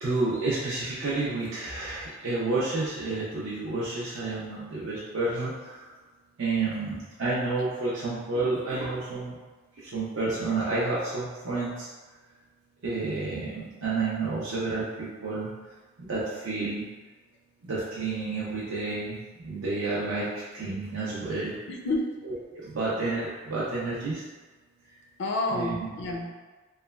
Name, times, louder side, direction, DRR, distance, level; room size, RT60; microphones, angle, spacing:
voice 1, 0.0-5.9 6.4-9.4 9.8-11.9 12.8-15.5 16.0-16.9 17.6-21.5 22.2-24.2 25.5-25.7, right 3 dB, 65° right, -8 dB, 0.5 m, -30 dB
voice 2, 21.7-22.2 25.2-26.3, left 2 dB, 55° left, 1 dB, 0.4 m, -29 dB
3.0 x 2.2 x 2.2 m, 1.3 s
head